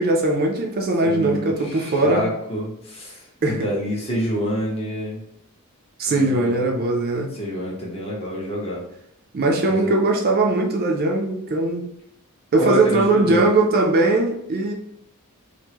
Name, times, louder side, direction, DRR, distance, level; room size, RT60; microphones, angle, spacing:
voice 1, 0.0-2.2 3.4-3.7 6.0-7.3 9.3-11.9 12.5-14.7, right 2 dB, 45° right, 1 dB, 0.4 m, -20 dB
voice 2, 1.0-5.2 6.1-6.6 7.3-8.8 9.6-9.9 12.6-13.5, equal, 25° left, -4 dB, 1.0 m, -27 dB
3.4 x 2.1 x 2.9 m, 0.77 s
head